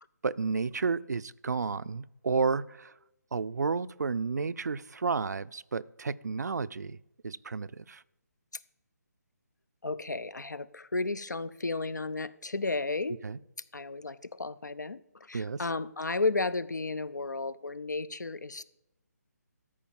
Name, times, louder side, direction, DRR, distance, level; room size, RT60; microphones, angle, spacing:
voice 1, 0.2-2.9 3.3-7.0 7.2-8.0 13.2-13.4 15.3-15.6, right 4 dB, 70° right, 16 dB, 0.4 m, -31 dB
voice 2, 9.8-13.2 13.7-18.6, left 3 dB, 85° left, 18 dB, 0.6 m, -33 dB
13.0 x 5.1 x 7.2 m, 0.87 s
figure-of-eight pair, 145°, 9 cm